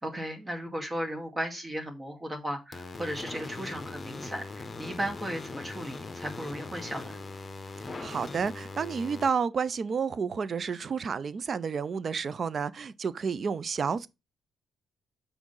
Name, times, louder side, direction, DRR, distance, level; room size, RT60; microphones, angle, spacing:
voice 1, 0.0-7.2, equal, 20° right, 2.2 m, -36 dB
sound 1, 2.7-9.3, left 3 dB, 25° left, 1.3 m, -40 dB
voice 2, 7.9-14.1, right 6 dB, 45° right, 0.7 m, -30 dB
6.3 x 5.0 x 5.5 m
cardioid pair, 90°, 0 cm